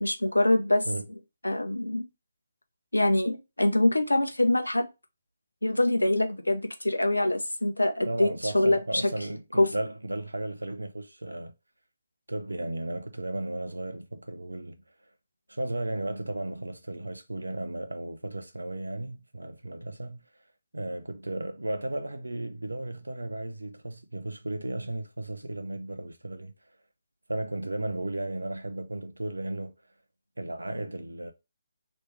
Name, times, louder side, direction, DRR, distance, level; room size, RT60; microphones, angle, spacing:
voice 1, 0.0-0.8 1.4-2.1 2.9-4.9 5.6-8.8 9.6-9.7, left 1 dB, 85° left, 0.7 m, -24 dB
voice 2, 8.0-11.5 12.3-14.8 15.5-20.2 20.7-26.5 27.3-29.7 30.4-31.3, right 1 dB, 80° right, 0.7 m, -34 dB
3.1 x 3.0 x 3.2 m
figure-of-eight pair, 145°, 0 cm